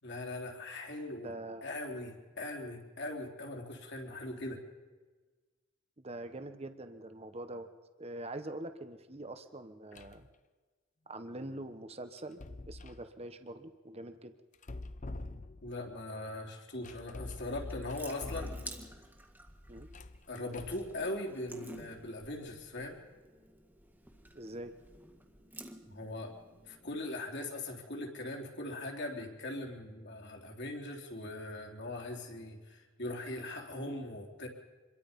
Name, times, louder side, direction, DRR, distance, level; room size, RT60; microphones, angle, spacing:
voice 1, 0.0-1.3 1.6-4.6 15.6-18.5 20.3-23.0 25.8-26.3 26.7-34.5, left 2 dB, 55° left, 0 dB, 3.7 m, -40 dB
voice 2, 1.2-1.7 6.0-7.7 8.0-10.3 11.1-14.3 19.7-19.9 24.3-24.7 33.7-33.9, right 1 dB, 30° right, 8 dB, 1.2 m, -44 dB
sound 1, 9.9-10.3 12.2-13.1 14.5-15.8 16.8-19.0 19.8-20.9, left 2 dB, 40° left, 0.8 m, -45 dB
Water tap faucet / Sink (filling or washing) / Drip, 17.2-27.0, right 1 dB, 10° right, 1.7 m, -52 dB
26.5 x 22.5 x 5.4 m, 1.3 s
head